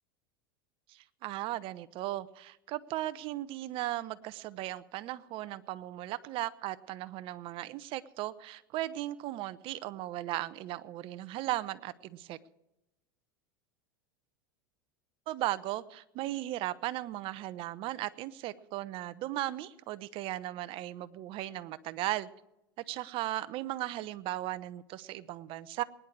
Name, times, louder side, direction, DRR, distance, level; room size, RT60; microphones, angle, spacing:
voice 1, 0.9-12.4 15.3-22.3 22.9-25.8, right 15 dB, 50° right, 14 dB, 1.0 m, -37 dB
21.5 x 10.5 x 4.7 m, 0.89 s
hypercardioid pair, 95°, 12 cm